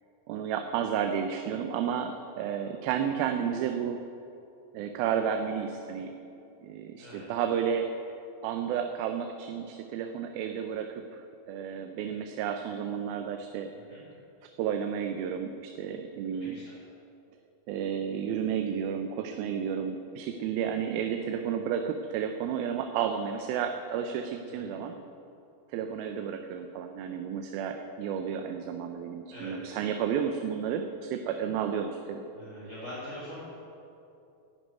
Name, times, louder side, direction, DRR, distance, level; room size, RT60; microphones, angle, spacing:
voice 1, 0.3-4.0 4.7-6.1 6.6-7.9 8.4-11.0 11.5-13.7 14.6-16.6 17.7-24.9 25.7-32.3, right 8 dB, 90° right, 5 dB, 2.6 m, -32 dB
voice 2, 16.3-16.7 24.5-24.8 29.3-29.5 32.3-33.4, equal, 20° right, -10 dB, 4.5 m, -43 dB
12.0 x 10.5 x 9.3 m, 2.8 s
omnidirectional pair, 4.2 m